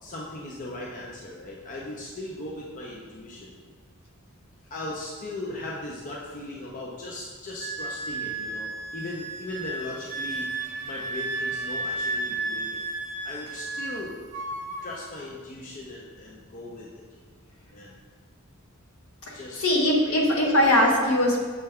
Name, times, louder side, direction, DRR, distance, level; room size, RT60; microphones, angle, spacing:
voice 1, 0.0-3.5 4.7-10.5 10.8-12.8 13.2-14.1 14.8-16.9 17.7-17.9 19.3-19.7 20.1-20.5, left 2 dB, 35° left, -4 dB, 0.5 m, -38 dB
Wind instrument woodwind instrument, 7.6-14.0 14.3-14.9, right 2 dB, 35° right, 0.4 m, -33 dB
voice 2, 19.2-21.4, left 1 dB, 70° left, -1 dB, 0.8 m, -21 dB
6.5 x 2.2 x 3.4 m, 1.5 s
head